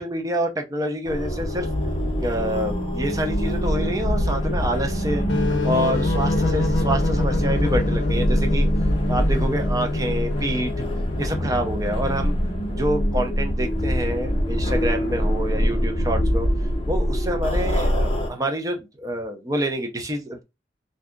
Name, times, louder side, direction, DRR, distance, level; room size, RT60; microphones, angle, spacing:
voice 1, 0.0-1.7 2.2-5.3 5.6-8.7 9.1-10.7 11.2-12.4 12.7-20.4, right 1 dB, 20° right, 0.5 m, -27 dB
sound 1, 1.1-18.3, equal, 30° left, 0.6 m, -24 dB
sound 2, 5.3-10.8, left 3 dB, 75° left, 0.6 m, -26 dB
2.6 x 2.3 x 3.6 m
head